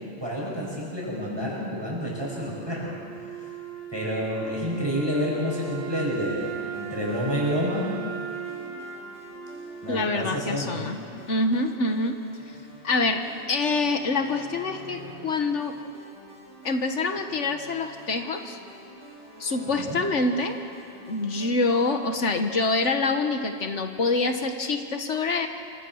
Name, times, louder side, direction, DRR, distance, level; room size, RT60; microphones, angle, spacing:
voice 1, 0.2-2.9 3.9-7.8 9.8-10.8 19.6-20.0, equal, 20° right, -4 dB, 8.0 m, -29 dB
Wind instrument woodwind instrument, 2.1-11.1, right 7 dB, 90° right, 3.6 m, -38 dB
sound 1, 6.4-21.8, right 1 dB, 65° left, 5.6 m, -49 dB
voice 2, 9.9-11.0 11.3-12.2 12.8-15.7 16.6-18.6 19.4-20.5 21.1-25.5, left 3 dB, 85° left, 6 dB, 1.8 m, -26 dB
sound 2, 13.3-15.1 17.8-19.8 23.2-23.4, left 2 dB, 70° right, 5.9 m, -49 dB
27.5 x 26.0 x 6.5 m, 2.7 s
omnidirectional pair, 1.2 m